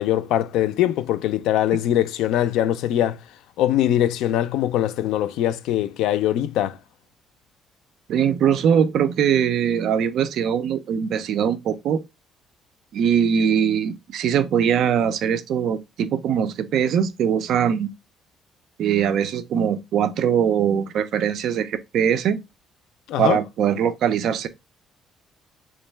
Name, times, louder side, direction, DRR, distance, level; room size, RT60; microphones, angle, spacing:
voice 1, 0.0-3.2 3.6-6.8 23.1-23.4, left 12 dB, 90° left, 0.3 m, -22 dB
voice 2, 8.1-12.0 12.9-17.9 18.8-22.4 23.2-24.5, right 8 dB, 60° right, 0.4 m, -21 dB
3.6 x 3.0 x 3.2 m
cardioid pair, 160°, 0 cm